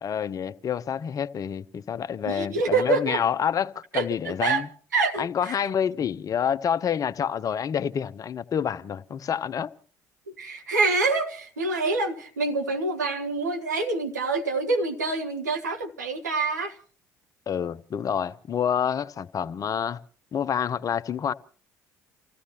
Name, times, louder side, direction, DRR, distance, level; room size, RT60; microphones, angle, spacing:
voice 1, 0.0-4.7 5.2-9.7 17.5-20.0 20.3-21.3, left 8 dB, 40° left, 0.8 m, -28 dB
voice 2, 2.2-3.2 3.9-4.6 4.9-5.5 10.4-16.8, right 3 dB, 85° right, 1.5 m, -26 dB
30.0 x 15.5 x 2.9 m
figure-of-eight pair, 55°, 9 cm